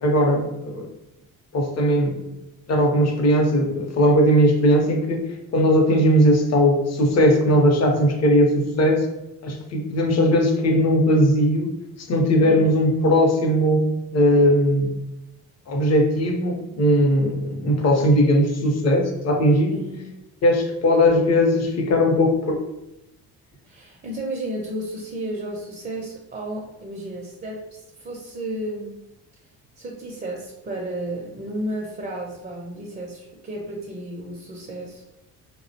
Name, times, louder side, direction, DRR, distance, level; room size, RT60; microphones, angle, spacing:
voice 1, 0.0-0.9 1.5-2.2 2.7-9.1 9.4-11.7 12.1-14.9 15.7-19.7 20.4-22.6, equal, 40° left, 3 dB, 0.6 m, -19 dB
voice 2, 19.7-20.1 23.7-29.0 29.8-35.1, right 1 dB, 25° right, -2 dB, 0.5 m, -33 dB
2.3 x 2.1 x 2.7 m, 0.89 s
supercardioid pair, 80°, 39 cm